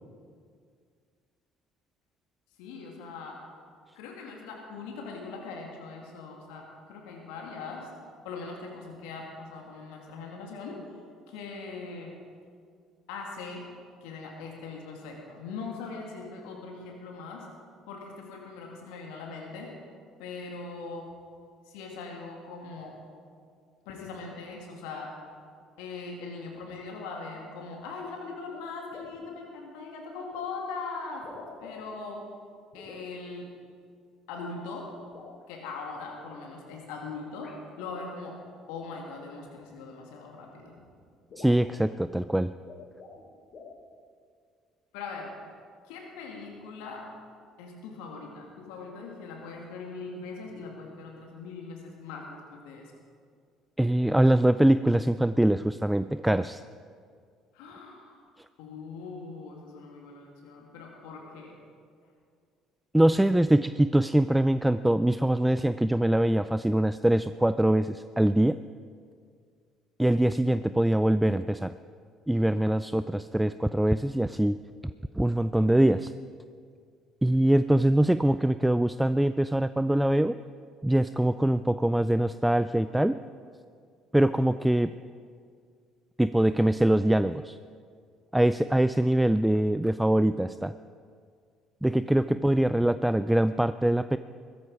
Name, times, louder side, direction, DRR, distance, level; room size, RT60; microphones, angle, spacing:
voice 1, 2.6-3.4 3.9-7.9 8.2-10.9 11.3-12.2 13.1-13.7 14.0-17.5 17.9-19.8 20.2-21.2 21.7-23.0 23.9-25.2 25.8-31.3 31.6-32.2 32.7-33.5 34.3-35.0 35.5-38.4 38.7-40.7 44.9-45.4 45.9-47.1 47.6-52.9 57.5-58.2 58.6-61.6, left 4 dB, 75° left, 0 dB, 2.2 m, -41 dB
sound 1, 28.5-28.6 28.9-29.3 30.3-30.5 31.1-32.0 32.7-33.1 35.0-35.8 37.4-37.6 38.8-39.0 40.2-40.3 40.6-40.7 41.0-41.1 41.3-41.7 42.5-43.2 43.5-43.8, left 4 dB, 50° left, 4.3 m, -47 dB
voice 2, 41.4-42.5 53.8-56.6 62.9-68.6 70.0-71.7 72.3-74.6 75.1-76.1 77.2-80.4 80.8-83.2 84.1-84.9 86.2-87.6 88.3-90.7 91.8-94.2, right 1 dB, 5° right, 14 dB, 0.4 m, -23 dB
16.0 x 14.5 x 4.8 m, 2.2 s
hypercardioid pair, 55°, 0 cm